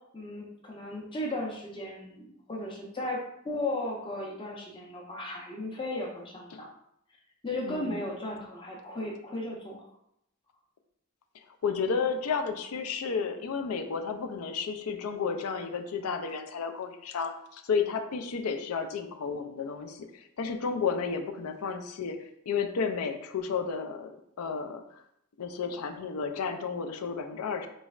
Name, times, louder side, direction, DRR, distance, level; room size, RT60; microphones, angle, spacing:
voice 1, 0.1-6.7 7.4-9.9, left 1 dB, 20° left, -1 dB, 0.6 m, -35 dB
voice 2, 7.7-8.1 11.6-22.2 22.5-25.0 25.4-27.7, left 5 dB, 90° left, 7 dB, 0.4 m, -32 dB
4.0 x 3.1 x 2.4 m, 0.75 s
head